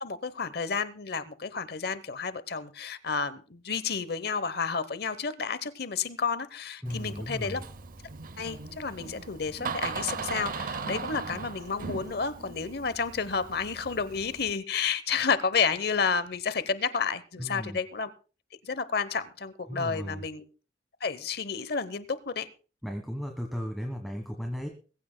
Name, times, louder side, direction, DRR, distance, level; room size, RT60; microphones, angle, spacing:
voice 1, 0.0-7.6 8.4-18.1 18.6-20.4 21.0-22.5, left 5 dB, 60° left, 0.9 m, -31 dB
voice 2, 6.8-7.6 17.4-17.8 19.7-20.2 22.8-24.7, equal, ahead, 1.3 m, -35 dB
Door, 6.9-14.5, right 4 dB, 50° right, 0.7 m, -38 dB
21.0 x 15.0 x 2.2 m
head